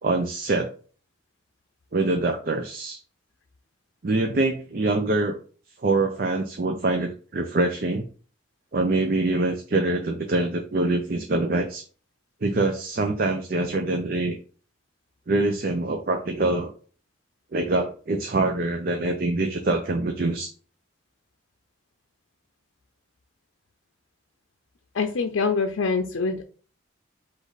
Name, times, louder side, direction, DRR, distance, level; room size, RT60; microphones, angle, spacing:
voice 1, 0.0-0.7 1.9-3.0 4.0-5.4 5.8-8.0 8.7-11.8 12.4-14.4 15.3-16.7 17.5-20.5, right 2 dB, 45° right, 4 dB, 0.5 m, -24 dB
voice 2, 24.9-26.4, left 4 dB, 85° left, 6 dB, 0.5 m, -24 dB
5.0 x 2.5 x 4.0 m, 0.40 s
head